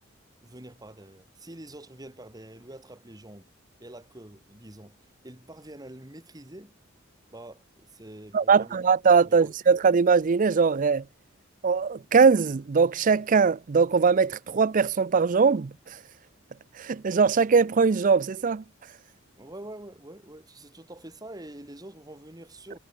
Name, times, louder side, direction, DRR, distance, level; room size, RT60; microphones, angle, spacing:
voice 1, 0.4-3.5 3.8-5.0 5.2-6.7 7.3-8.8 9.2-9.5 19.4-22.8, right 1 dB, 20° right, 1.9 m, -45 dB
voice 2, 8.3-11.0 11.6-15.7 16.8-18.6, right 5 dB, 40° right, 0.4 m, -21 dB
head